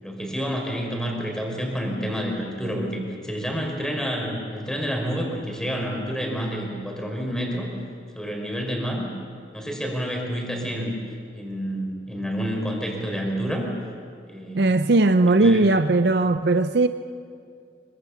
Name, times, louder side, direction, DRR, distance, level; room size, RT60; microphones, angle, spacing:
voice 1, 0.0-7.7 8.1-9.1 9.5-11.0 11.3-13.7 14.3-14.7 15.4-15.7, equal, 5° left, 0 dB, 4.9 m, -29 dB
voice 2, 14.5-16.9, right 2 dB, 60° right, 10 dB, 0.7 m, -18 dB
25.5 x 24.5 x 7.2 m, 2.4 s
head